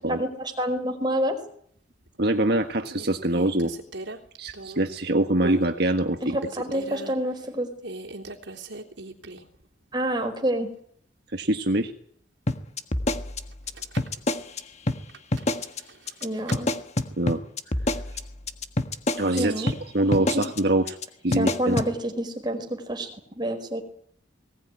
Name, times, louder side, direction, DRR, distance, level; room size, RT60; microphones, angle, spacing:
voice 1, 0.1-1.4 6.2-7.7 9.9-10.7 16.2-16.7 19.4-19.7 20.0-20.4 21.3-23.1 23.3-23.8, right 1 dB, 25° right, 5 dB, 4.7 m, -28 dB
sound 1, 2.1-2.4 2.8-5.0 5.4-5.7 6.1-7.1 7.8-9.6 9.9-10.0 13.5-14.2 15.1-16.6, right 2 dB, 80° right, 3.4 m, -38 dB
voice 2, 2.2-3.7 4.4-6.4 11.3-11.9 17.2-17.4 19.1-21.0 21.2-21.8, right 1 dB, 60° right, 5 dB, 1.6 m, -24 dB
sound 2, 12.5-14.6 14.9-15.0 15.3-15.8 16.1-16.3 16.5-19.4 19.7-19.8 20.1-20.6 20.9-21.0 21.3-21.9, left 2 dB, 35° left, 1.6 m, -26 dB
20.0 x 19.5 x 9.8 m, 0.63 s
head